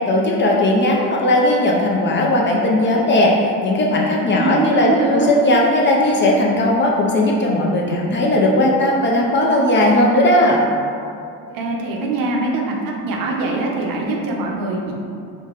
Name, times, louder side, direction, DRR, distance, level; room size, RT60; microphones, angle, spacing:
voice 1, 0.1-10.6, left 1 dB, 30° left, -2 dB, 0.4 m, -17 dB
voice 2, 4.3-5.3 11.5-14.9, right 2 dB, 60° right, -1 dB, 0.7 m, -22 dB
3.8 x 2.1 x 3.5 m, 2.5 s
cardioid pair, 115°, 38 cm